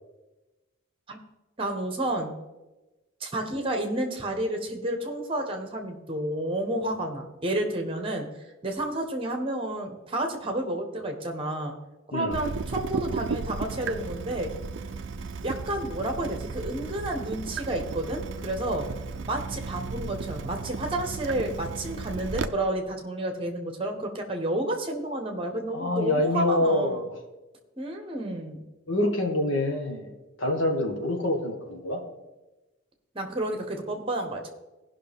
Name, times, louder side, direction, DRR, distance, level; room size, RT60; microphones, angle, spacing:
voice 1, 1.6-2.3 3.2-8.3 8.6-11.8 12.1-14.5 15.4-18.9 19.3-27.1 27.8-28.6 33.1-34.5, right 1 dB, 25° right, 4 dB, 1.2 m, -30 dB
Water tap faucet / Drip, 12.3-22.5, right 4 dB, 60° right, 0.4 m, -34 dB
voice 2, 25.7-27.2 28.9-32.0, left 1 dB, 65° left, 2 dB, 1.6 m, -26 dB
16.0 x 5.8 x 3.6 m, 1.1 s
head